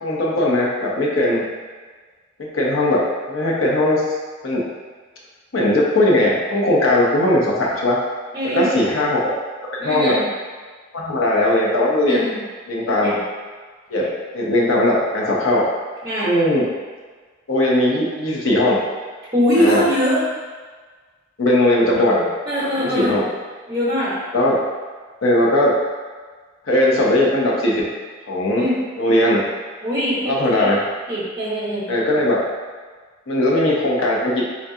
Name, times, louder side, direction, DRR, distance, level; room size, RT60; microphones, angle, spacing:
voice 1, 0.0-1.4 2.4-4.0 4.4-4.6 5.5-8.0 8.5-9.2 9.8-10.2 10.9-12.3 12.7-13.2 13.9-15.6 16.2-16.6 17.5-18.8 19.5-19.8 21.4-22.3 22.8-23.2 24.3-24.6 25.2-25.7 26.7-27.8 28.3-28.6 29.0-29.4 30.3-30.8 31.9-32.4 33.3-34.4, left 1 dB, 85° left, -4 dB, 0.7 m, -18 dB
voice 2, 8.3-8.7 9.8-10.3 12.1-12.4 13.0-13.2 16.0-16.3 19.3-20.2 22.5-23.2 23.7-24.2 28.5-28.8 29.8-30.7 31.1-31.9, equal, 20° right, -12 dB, 0.8 m, -22 dB
3.7 x 2.3 x 2.7 m, 1.5 s
head